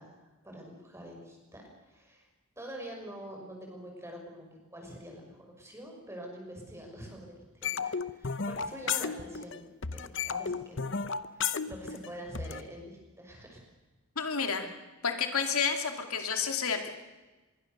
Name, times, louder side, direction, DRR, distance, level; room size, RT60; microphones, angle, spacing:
voice 1, 0.0-2.3 2.6-10.9 11.3-13.6, equal, 10° right, 1 dB, 5.8 m, -46 dB
sound 1, 7.6-9.6 9.8-12.6, left 6 dB, 55° left, 0.9 m, -33 dB
voice 2, 14.2-14.7 15.0-16.9, left 6 dB, 80° left, 5 dB, 2.7 m, -30 dB
25.5 x 22.0 x 6.8 m, 1.2 s
head